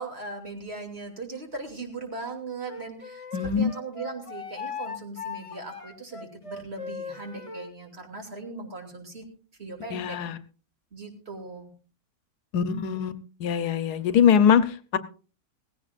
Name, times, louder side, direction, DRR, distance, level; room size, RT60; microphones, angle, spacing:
voice 1, 0.0-9.3 9.6-10.2 10.9-11.7, right 3 dB, 40° right, 2 dB, 3.1 m, -38 dB
Wind instrument woodwind instrument, 2.7-7.7, left 5 dB, 25° left, 1.0 m, -38 dB
voice 2, 3.3-3.7 9.9-10.4 12.5-13.1 13.4-15.0, left 8 dB, 85° left, 13 dB, 1.4 m, -22 dB
18.5 x 16.0 x 2.5 m, 0.37 s
omnidirectional pair, 1.7 m